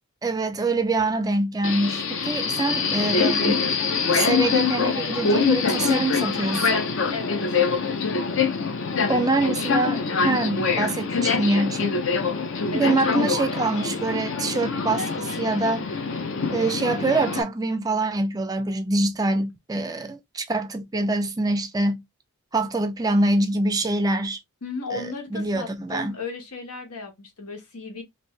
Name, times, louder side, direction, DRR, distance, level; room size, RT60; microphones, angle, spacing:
voice 1, 0.2-3.6 4.1-6.8 9.1-11.9 12.7-16.0 16.5-22.0 22.5-24.4 24.9-25.1 25.3-26.1, right 2 dB, 15° right, 0.4 m, -25 dB
Subway metro underground, 1.6-17.4, left 5 dB, 55° left, 0.6 m, -24 dB
voice 2, 7.1-7.4 12.7-13.0 24.6-28.0, left 4 dB, 85° left, 1.2 m, -35 dB
2.9 x 2.6 x 3.2 m
head